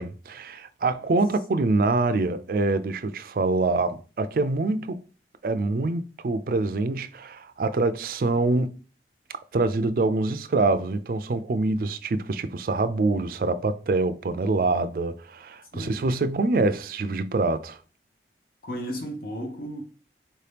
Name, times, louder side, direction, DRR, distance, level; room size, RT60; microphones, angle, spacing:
voice 1, 0.0-5.0 5.4-8.8 9.5-17.8, right 3 dB, 50° right, 0.4 m, -25 dB
voice 2, 15.7-16.1 18.6-19.8, equal, 55° left, 0.8 m, -34 dB
4.4 x 2.8 x 3.3 m
head